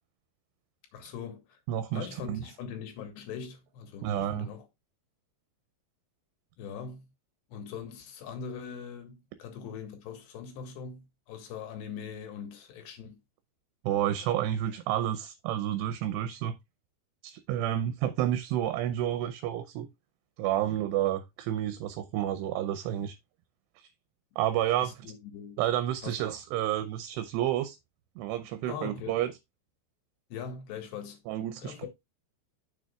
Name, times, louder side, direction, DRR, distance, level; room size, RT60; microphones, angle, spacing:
voice 1, 0.9-1.6 1.9-4.7 6.6-7.1 7.5-13.2 24.8-25.6 26.0-26.3 28.7-29.2 30.3-31.2 31.6-31.9, left 7 dB, 75° left, 3.8 m, -41 dB
voice 2, 1.7-2.4 4.0-4.5 13.8-16.5 17.2-19.9 20.4-23.2 23.8-23.9 24.4-25.1 25.6-27.8 28.2-29.3 31.3-31.9, right 12 dB, 80° right, 2.7 m, -30 dB
9.3 x 7.1 x 2.3 m
omnidirectional pair, 5.0 m